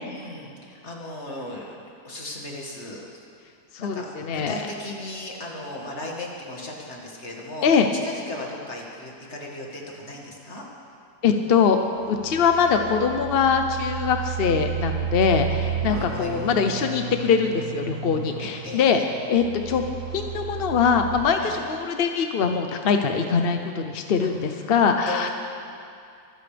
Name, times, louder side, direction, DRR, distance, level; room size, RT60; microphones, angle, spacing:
voice 1, 0.0-3.0 3.8-10.6 12.3-12.4 15.9-16.4 18.4-19.1 21.4-21.6 24.2-24.6 25.1-25.3, left 1 dB, 40° left, -2 dB, 2.2 m, -37 dB
voice 2, 3.7-4.6 7.6-7.9 11.2-11.8 12.1-19.0 19.3-19.9 20.1-25.3, left 6 dB, 55° left, 5 dB, 0.6 m, -22 dB
sound 1, 11.7-21.2, right 8 dB, 70° right, 2.0 m, -32 dB
24.5 x 13.5 x 3.4 m, 2.4 s
omnidirectional pair, 1.8 m